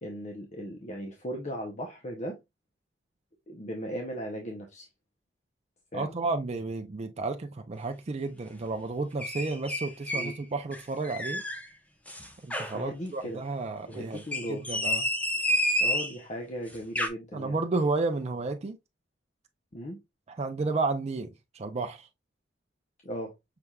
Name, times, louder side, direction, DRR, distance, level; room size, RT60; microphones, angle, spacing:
voice 1, 0.0-2.4 3.5-4.9 5.9-6.1 10.1-10.4 12.7-13.4 13.8-14.6 15.8-17.6 19.7-20.0 23.0-23.3, equal, 40° left, 0.7 m, -37 dB
voice 2, 5.9-11.4 12.4-15.0 17.3-18.8 20.3-21.3 21.5-22.1, right 3 dB, 35° right, 0.4 m, -32 dB
sound 1, 9.2-10.4 10.7-11.7 12.1-12.8 14.2-16.2 16.7-17.1, left 1 dB, 10° left, 0.7 m, -29 dB
5.8 x 3.3 x 2.3 m
head